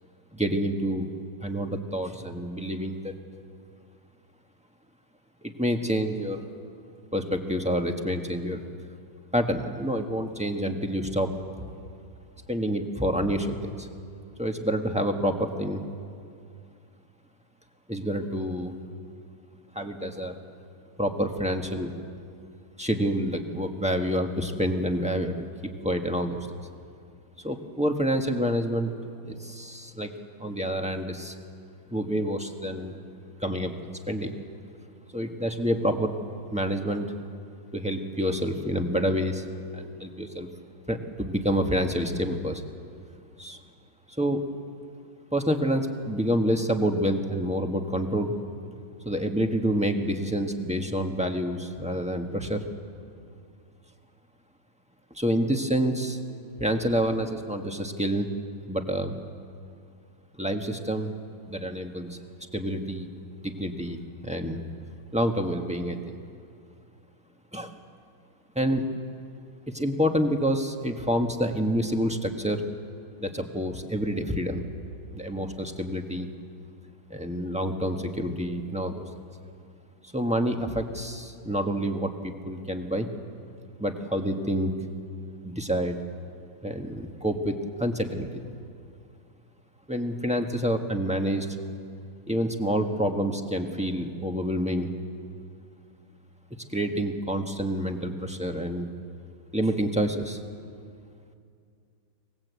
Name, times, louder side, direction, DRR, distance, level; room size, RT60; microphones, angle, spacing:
voice 1, 0.3-1.1 1.4-3.1 5.4-6.4 7.1-8.6 9.3-11.3 11.6-11.7 12.5-13.9 14.4-15.8 17.9-18.8 19.7-20.4 21.0-21.9 22.8-25.4 25.8-26.5 27.4-28.9 29.3-30.1 30.4-31.3 31.9-32.9 33.4-33.7 34.1-34.3 35.1-36.1 36.5-37.1 37.7-39.4 39.7-40.5 40.9-42.6 43.4-43.6 44.2-44.4 45.3-48.3 49.0-52.6 55.1-56.2 56.6-58.3 58.7-59.2 60.4-61.1 61.5-62.2 62.5-63.1 63.4-64.6 65.1-66.2 67.5-67.7 68.5-68.8 69.7-72.6 73.2-74.6 75.1-76.3 77.1-79.0 80.1-83.1 83.8-84.7 85.4-86.0 86.6-88.4 89.9-91.5 92.3-94.9 96.7-98.9 99.5-100.4, equal, 5° right, 4 dB, 1.2 m, -28 dB
27.5 x 19.0 x 8.3 m, 2.4 s
omnidirectional pair, 2.2 m